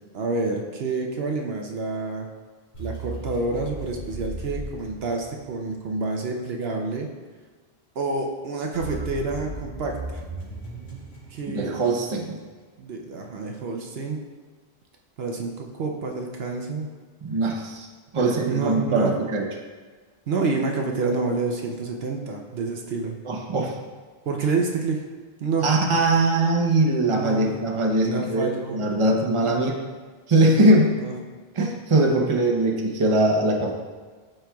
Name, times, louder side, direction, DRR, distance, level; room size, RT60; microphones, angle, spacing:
voice 1, 0.1-2.3 2.8-7.1 8.0-10.2 11.3-11.8 12.8-14.2 15.2-16.9 18.2-19.1 20.3-23.2 24.3-25.0 25.4-25.7 27.0-27.5 28.0-28.8 29.4-29.6 30.8-31.1, right 3 dB, 70° right, 1 dB, 0.9 m, -28 dB
sound 1, 2.7-5.7 8.7-12.2, right 2 dB, 75° left, 2.4 m, -36 dB
voice 2, 11.5-12.4 17.2-17.9 18.1-19.4 23.2-23.7 25.6-29.7 30.3-30.9 31.5-33.7, right 2 dB, 30° right, 0 dB, 0.8 m, -21 dB
13.0 x 4.4 x 2.3 m, 1.4 s
omnidirectional pair, 1.1 m